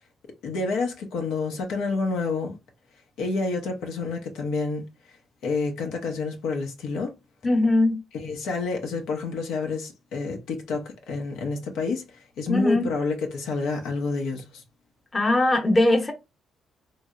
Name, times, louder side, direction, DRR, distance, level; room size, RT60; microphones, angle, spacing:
voice 1, 0.4-2.5 3.2-4.8 5.4-7.1 8.1-14.6, left 4 dB, 85° left, 0.7 m, -29 dB
voice 2, 7.4-8.0 12.5-12.9 15.1-16.1, left 2 dB, 25° left, 0.8 m, -20 dB
3.1 x 2.7 x 2.4 m
cardioid pair, 90°, 0 cm